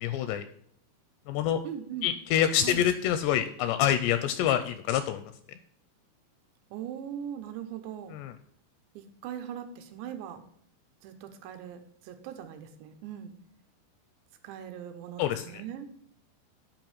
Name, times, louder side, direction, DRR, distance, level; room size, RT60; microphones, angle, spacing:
voice 1, 0.0-0.4 1.3-1.6 2.0-5.2 8.1-8.3 15.2-15.6, left 10 dB, 85° left, 11 dB, 2.5 m, -26 dB
voice 2, 1.6-2.1 2.6-2.8 6.7-8.2 9.0-10.4 11.0-13.3 14.4-15.9, right 9 dB, 80° right, 7 dB, 3.0 m, -40 dB
8.9 x 5.3 x 5.3 m, 0.65 s
omnidirectional pair, 5.2 m